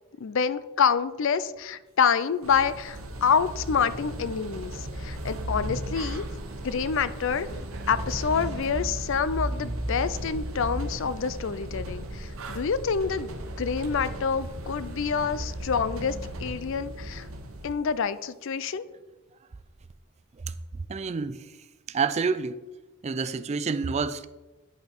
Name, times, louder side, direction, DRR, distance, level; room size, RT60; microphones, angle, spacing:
voice 1, 0.2-6.2 6.6-7.5 7.9-17.3 17.6-18.8, left 6 dB, 60° left, 0.4 m, -27 dB
sound 1, 2.4-17.7, right 1 dB, 70° right, 1.0 m, -36 dB
Bus, 5.9-15.6, right 1 dB, 55° right, 1.2 m, -44 dB
voice 2, 20.9-21.5 21.9-22.6 23.0-24.3, right 5 dB, 30° right, 0.3 m, -28 dB
9.7 x 5.5 x 4.3 m
head